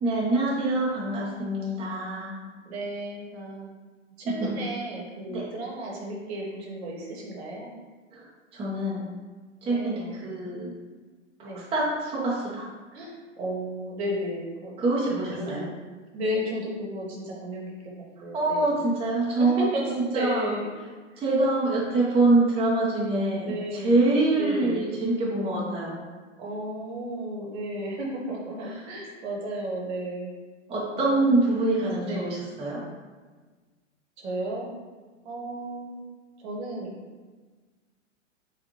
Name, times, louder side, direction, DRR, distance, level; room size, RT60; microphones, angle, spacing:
voice 1, 0.0-2.4 4.2-4.5 5.3-5.4 8.1-8.2 8.5-9.0 9.6-10.7 11.4-12.7 14.8-15.6 18.3-19.7 20.1-20.5 21.2-23.5 23.8-26.0 30.7-32.8, right 2 dB, 15° right, -6 dB, 0.9 m, -25 dB
voice 2, 2.6-3.7 4.2-7.7 9.6-10.3 11.4-11.6 12.9-14.7 15.1-15.7 16.1-17.9 18.2-18.8 19.4-20.7 21.1-21.2 21.6-22.0 23.4-23.9 24.3-24.8 26.4-30.3 30.9-31.3 32.0-32.3 34.2-34.7 35.2-36.0 36.4-37.0, right 1 dB, 55° right, -2 dB, 1.2 m, -34 dB
6.0 x 2.5 x 2.9 m, 1.4 s
hypercardioid pair, 115°, 38 cm